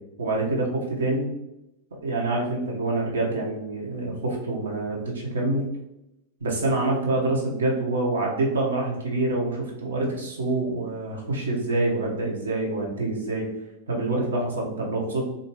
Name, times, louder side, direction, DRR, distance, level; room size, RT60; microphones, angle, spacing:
voice 1, 0.2-1.3 2.0-5.6 6.4-13.5 13.9-15.3, right 2 dB, 70° right, -2 dB, 0.9 m, -26 dB
3.5 x 2.6 x 2.9 m, 0.87 s
figure-of-eight pair, 90°, 0 cm